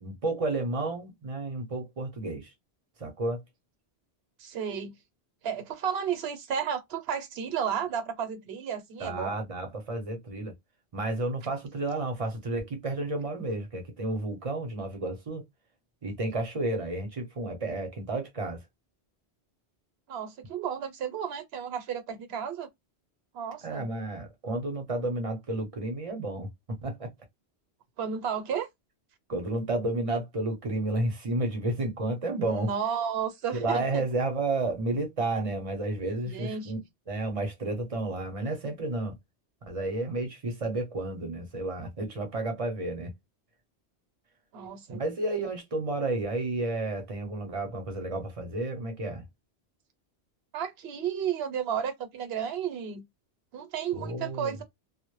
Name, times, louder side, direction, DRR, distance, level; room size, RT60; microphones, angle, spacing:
voice 1, 0.0-2.5 3.0-3.4 9.0-10.5 10.9-15.4 16.0-18.6 23.6-26.5 26.8-27.1 29.3-32.7 33.5-36.8 37.1-39.1 39.7-43.1 44.9-49.2 53.9-54.5, right 2 dB, 40° right, 0.6 m, -31 dB
voice 2, 4.4-4.9 5.4-9.4 20.1-22.7 23.3-23.9 28.0-28.7 32.4-34.1 36.2-36.8 44.5-45.0 50.5-53.0 53.5-54.6, right 8 dB, 70° right, 0.8 m, -33 dB
2.0 x 2.0 x 3.0 m
omnidirectional pair, 1.1 m